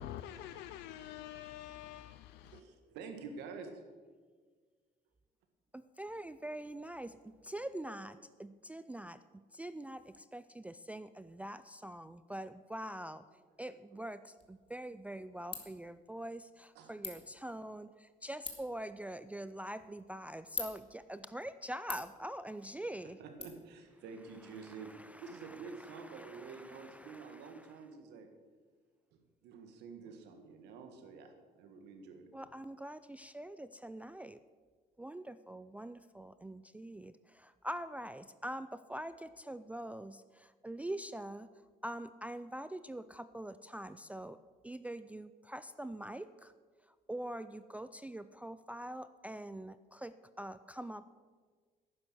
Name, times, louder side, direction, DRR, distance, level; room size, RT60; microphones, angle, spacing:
voice 1, 0.0-2.5, left 11 dB, 90° left, 0.5 m, -46 dB
voice 2, 2.5-3.8 13.6-14.0 16.8-17.2 22.8-22.9 23.2-28.3 29.1-32.3, right 5 dB, 90° right, 1.8 m, -49 dB
voice 3, 5.7-9.2 9.5-13.2 13.6-23.2 26.1-27.3 32.3-34.4 35.0-41.5 41.8-44.4 44.6-46.5 47.1-51.1, right 1 dB, 10° right, 0.3 m, -44 dB
Ratchet pawl, 14.4-23.4, left 5 dB, 35° left, 2.1 m, -49 dB
11.0 x 9.7 x 6.3 m
cardioid pair, 110°, 17 cm